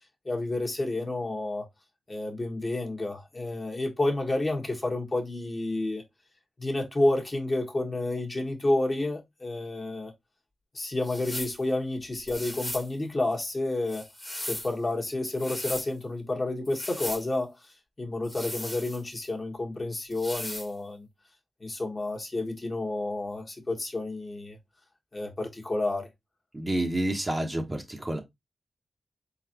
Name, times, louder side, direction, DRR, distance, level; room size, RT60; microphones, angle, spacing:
voice 1, 0.2-1.6 2.1-6.0 6.6-10.1 10.7-14.0 14.5-17.5 18.0-21.1 21.6-24.6 25.1-26.1, left 2 dB, 35° left, 1.3 m, -30 dB
sound 1, 11.0-11.6 12.3-12.9 13.9-14.7 15.3-15.9 16.7-17.3 18.2-19.3 20.1-20.7, left 1 dB, 10° left, 1.3 m, -37 dB
voice 2, 26.5-28.2, right 1 dB, 20° right, 1.1 m, -29 dB
4.1 x 4.0 x 2.9 m
cardioid pair, 75°, 0 cm